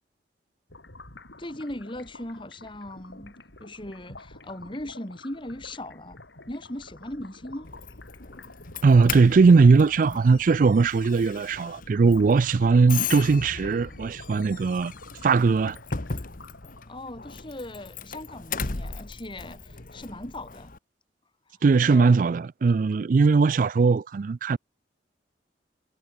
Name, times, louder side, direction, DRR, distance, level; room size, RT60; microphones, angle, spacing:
sound 1, 0.7-17.1, left 2 dB, 85° left, 5.9 m, -48 dB
voice 1, 1.4-3.3 3.6-6.2 6.5-7.7 16.9-20.7 21.5-21.6 21.9-22.4, left 1 dB, 30° left, 2.9 m, -39 dB
Doorbell, 7.6-20.8, left 5 dB, 50° left, 1.4 m, -37 dB
voice 2, 8.8-14.9 15.2-15.8 21.6-24.6, right 4 dB, 50° right, 0.4 m, -19 dB
head